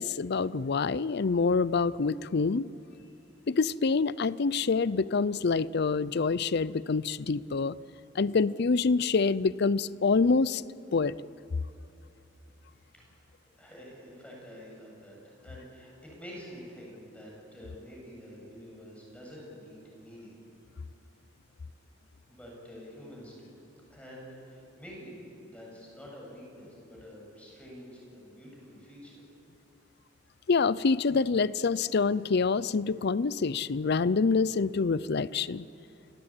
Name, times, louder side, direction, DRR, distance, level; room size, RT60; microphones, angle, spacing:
voice 1, 0.0-2.7 3.5-7.8 8.1-10.6 10.9-11.1 30.5-35.6, left 4 dB, 55° left, 19 dB, 0.5 m, -26 dB
voice 2, 13.6-20.3 22.3-23.5 23.9-29.2, equal, 5° left, -3 dB, 7.9 m, -48 dB
29.5 x 18.5 x 9.0 m, 2.8 s
head